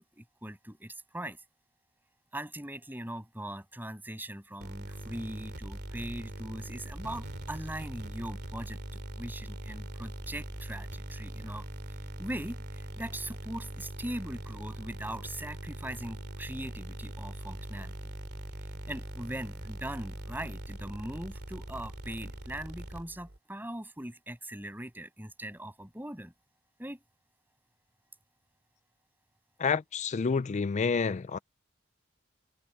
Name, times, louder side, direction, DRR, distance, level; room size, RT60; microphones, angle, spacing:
voice 1, 0.0-1.4 2.3-11.7 12.2-18.1 18.9-26.3 26.8-27.0, right 1 dB, 10° right, 7.3 m, -40 dB
sound 1, 4.6-23.4, right 1 dB, 55° right, 2.6 m, -41 dB
voice 2, 29.6-31.4, left 5 dB, 35° left, 0.4 m, -29 dB
head